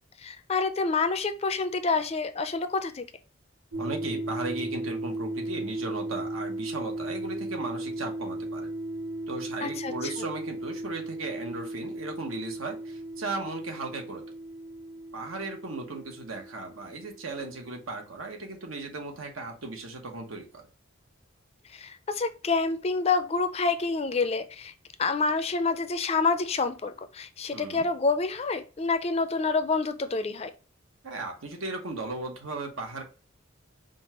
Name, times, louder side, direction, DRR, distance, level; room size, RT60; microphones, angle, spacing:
voice 1, 0.2-3.0 9.6-10.1 21.7-24.7 25.0-30.5, left 4 dB, 30° left, 10 dB, 0.4 m, -28 dB
sound 1, 3.7-17.7, right 1 dB, 60° right, 1.6 m, -36 dB
voice 2, 3.8-8.7 9.3-14.2 15.1-20.6 27.5-27.8 31.0-33.0, right 3 dB, 90° right, 3 dB, 1.1 m, -36 dB
5.2 x 2.4 x 2.9 m, 0.34 s
head